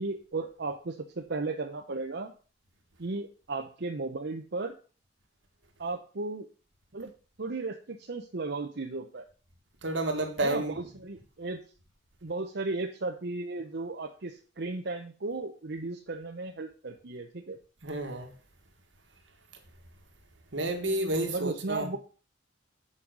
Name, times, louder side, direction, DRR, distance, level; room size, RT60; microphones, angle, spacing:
voice 1, 0.0-2.3 3.0-4.8 5.8-6.5 6.9-7.1 7.4-9.3 10.4-11.6 12.2-17.6 21.2-22.0, right 3 dB, 65° right, 0.8 m, -35 dB
voice 2, 9.8-10.8 17.8-18.3 20.5-21.9, right 1 dB, 85° right, 1.7 m, -30 dB
7.6 x 5.5 x 6.1 m
head